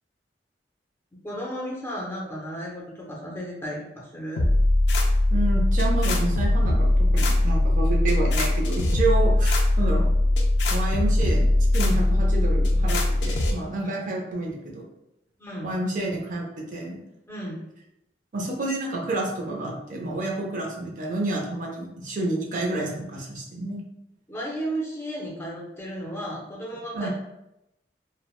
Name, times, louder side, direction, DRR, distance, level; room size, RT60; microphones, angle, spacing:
voice 1, 1.2-4.5 9.7-10.0 13.8-14.0 15.4-15.7 17.3-17.6 24.3-27.1, equal, 15° left, -3 dB, 0.6 m, -34 dB
sound 1, 4.4-13.5, left 1 dB, 85° left, 0.4 m, -21 dB
voice 2, 5.3-10.1 10.7-14.9 15.6-17.0 18.3-23.8 26.9-27.1, right 2 dB, 50° right, -1 dB, 0.5 m, -29 dB
3.2 x 2.1 x 2.3 m, 0.87 s
head